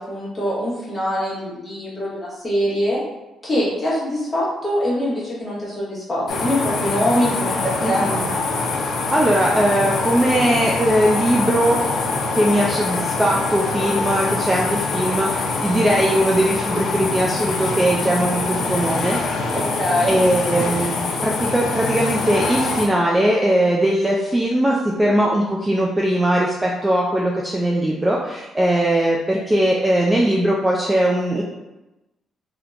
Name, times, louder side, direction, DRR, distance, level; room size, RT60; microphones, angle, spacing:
voice 1, 0.0-3.0 3.4-8.1 19.5-20.2, equal, 15° left, -8 dB, 1.3 m, -23 dB
sound 1, 6.3-22.9, left 3 dB, 70° left, 0.5 m, -24 dB
voice 2, 7.8-8.3 8.8-11.8 12.3-19.2 20.1-31.4, right 1 dB, 10° right, -3 dB, 0.3 m, -20 dB
3.5 x 2.8 x 2.4 m, 1.0 s
cardioid pair, 145°, 0 cm